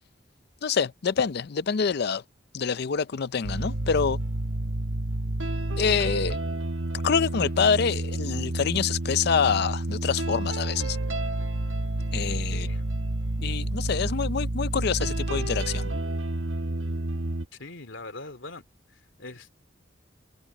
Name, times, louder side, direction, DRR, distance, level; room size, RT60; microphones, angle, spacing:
voice 1, 0.6-2.2 2.5-4.2 5.8-6.4 7.0-11.0 12.1-12.7 13.4-15.9, left 6 dB, 55° left, 0.5 m, -26 dB
sound 1, 3.4-17.4, right 1 dB, 85° right, 1.2 m, -29 dB
voice 2, 12.5-12.9 17.5-18.6 18.9-19.6, left 2 dB, 85° left, 2.8 m, -42 dB
head